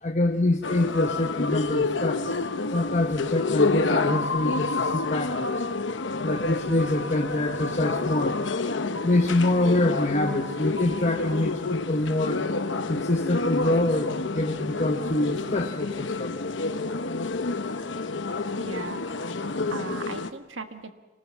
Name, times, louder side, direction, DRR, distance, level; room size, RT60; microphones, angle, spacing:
voice 1, 0.0-2.2 2.7-5.6 6.2-8.4 9.0-12.4 12.9-16.4, left 2 dB, 35° left, 3 dB, 1.0 m, -25 dB
sound 1, 0.6-20.3, left 3 dB, 70° left, 1.0 m, -29 dB
voice 2, 18.6-19.2 19.7-20.9, right 3 dB, 80° right, 7 dB, 1.5 m, -37 dB
26.0 x 19.0 x 7.3 m, 1.2 s
head